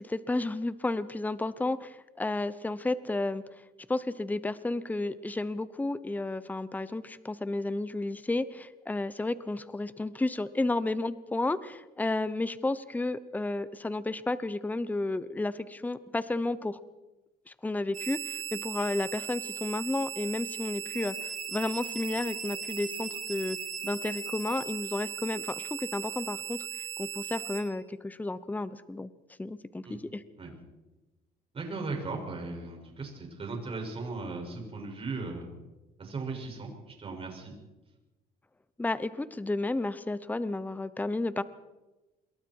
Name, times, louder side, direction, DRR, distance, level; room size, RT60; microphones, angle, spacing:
voice 1, 0.0-3.4 3.9-16.8 17.5-23.6 23.8-26.7 27.0-29.1 29.4-30.2 38.8-41.4, left 2 dB, 10° left, 15 dB, 0.9 m, -32 dB
sound 1, 17.9-27.6, right 8 dB, 50° right, 4.3 m, -38 dB
voice 2, 31.5-35.5 36.0-37.6, right 3 dB, 35° right, 2 dB, 6.7 m, -37 dB
27.5 x 22.5 x 4.8 m, 1.1 s
cardioid pair, 110°, 17 cm